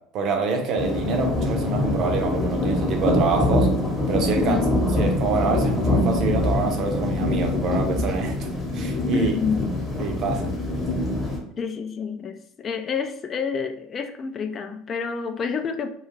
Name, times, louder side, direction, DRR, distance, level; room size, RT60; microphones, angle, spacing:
voice 1, 0.1-3.7 4.1-4.6 5.0-8.5 8.7-9.3 10.0-10.5, right 4 dB, 50° right, 3 dB, 0.6 m, -26 dB
sound 1, 0.8-11.4, left 1 dB, 15° left, 0.9 m, -24 dB
voice 2, 4.4-4.7 9.1-9.7 11.6-15.9, left 5 dB, 35° left, 7 dB, 0.3 m, -28 dB
2.4 x 2.3 x 3.1 m, 0.70 s
hypercardioid pair, 80°, 0 cm